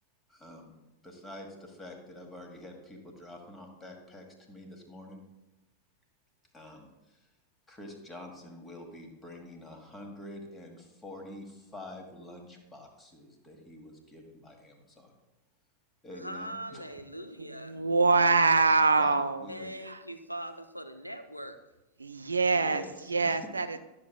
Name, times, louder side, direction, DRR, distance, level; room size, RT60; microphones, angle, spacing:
voice 1, 0.3-0.7 1.0-5.2 6.5-7.3 7.7-15.2 16.0-16.9 19.0-19.7 22.6-23.5, left 1 dB, 15° left, 3 dB, 1.5 m, -47 dB
voice 2, 16.2-17.8 19.5-21.6, right 1 dB, 90° left, 7 dB, 0.5 m, -41 dB
voice 3, 17.4-19.5 19.8-20.0 22.0-23.8, right 3 dB, 75° right, 11 dB, 0.4 m, -25 dB
12.0 x 6.7 x 2.3 m, 1.0 s
figure-of-eight pair, 90°, 0 cm